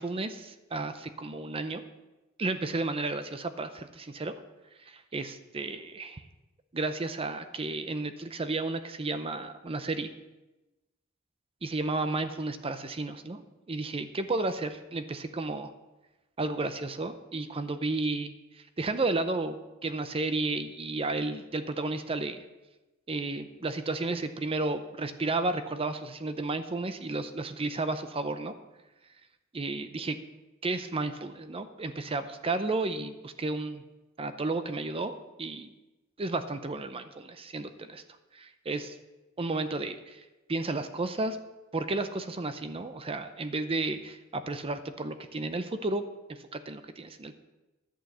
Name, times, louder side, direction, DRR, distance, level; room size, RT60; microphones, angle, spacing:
voice 1, 0.0-1.8 2.4-4.3 4.9-6.2 6.7-10.1 11.6-15.7 16.4-22.4 23.1-28.5 29.5-30.2 30.6-33.8 34.2-35.7 36.2-38.0 38.3-39.0 39.4-40.2 40.5-41.4 41.7-47.3, right 2 dB, 25° right, 10 dB, 0.6 m, -32 dB
11.0 x 6.3 x 7.9 m, 1.1 s
head